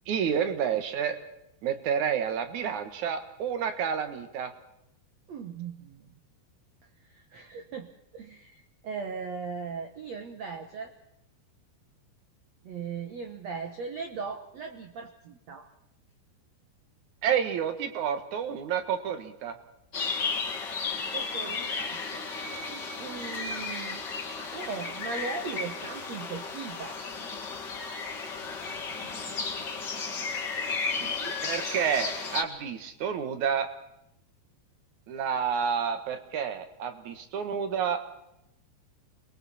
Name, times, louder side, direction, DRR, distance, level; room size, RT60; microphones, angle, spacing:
voice 1, 0.1-1.2 1.6-4.5 17.2-19.6 31.4-33.7 35.1-38.0, right 7 dB, 60° right, 8 dB, 2.2 m, -29 dB
voice 2, 5.3-6.1 7.0-10.9 12.6-15.7 21.1-22.0 22.4-24.0 24.5-27.0 28.4-28.6 29.0-29.4 30.9-31.4, right 5 dB, 90° right, 5 dB, 1.5 m, -39 dB
sound 1, 19.9-32.4, left 4 dB, 35° left, 2.0 m, -34 dB
30.0 x 22.0 x 4.3 m, 0.81 s
omnidirectional pair, 5.2 m